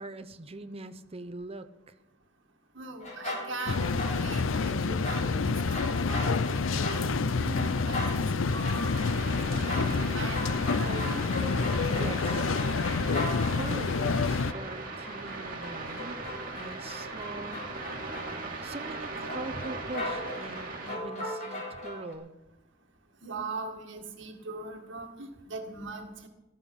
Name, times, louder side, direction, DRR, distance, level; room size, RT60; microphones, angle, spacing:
voice 1, 0.0-1.9 11.9-12.4 13.0-17.6 18.6-22.3, right 2 dB, 30° right, 9 dB, 0.9 m, -42 dB
voice 2, 2.8-9.0 9.5-11.2 23.2-26.3, right 3 dB, 65° right, 3 dB, 2.0 m, -40 dB
sound 1, 3.0-4.6 4.8-13.8 14.4-18.6 19.3-22.1, left 1 dB, 40° left, 4.3 m, -39 dB
sound 2, 3.7-14.5, left 4 dB, 80° left, 0.6 m, -28 dB
sound 3, 8.9-21.0, right 3 dB, 45° right, 2.7 m, -39 dB
17.0 x 13.5 x 5.5 m, 1.0 s
head